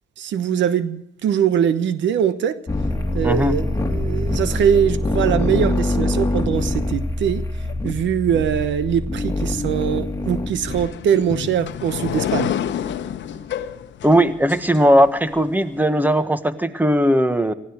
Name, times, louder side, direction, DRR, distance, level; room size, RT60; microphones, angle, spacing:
voice 1, 0.2-2.6 3.1-7.4 7.8-12.5, right 8 dB, 80° right, 0.9 m, -22 dB
sound 1, 2.7-10.9, left 2 dB, 15° left, 2.6 m, -24 dB
voice 2, 3.2-3.6 14.0-17.5, equal, 10° right, 1.5 m, -18 dB
sound 2, 10.7-15.4, left 9 dB, 75° left, 1.0 m, -28 dB
19.0 x 15.0 x 4.8 m
supercardioid pair, 60°, 19 cm